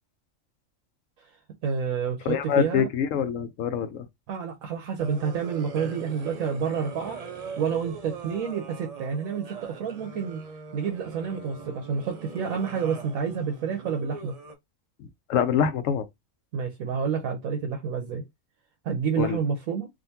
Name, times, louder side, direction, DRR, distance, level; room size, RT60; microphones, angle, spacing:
voice 1, 1.6-2.9 4.3-7.2 7.6-10.4 10.7-14.3 16.5-18.2 18.8-19.9, right 6 dB, 80° right, 1.1 m, -29 dB
voice 2, 2.3-4.1 15.3-16.1 19.2-19.4, left 8 dB, 75° left, 0.9 m, -25 dB
sound 1, 5.0-14.5, right 4 dB, 45° right, 0.5 m, -41 dB
3.7 x 2.5 x 2.7 m
omnidirectional pair, 1.4 m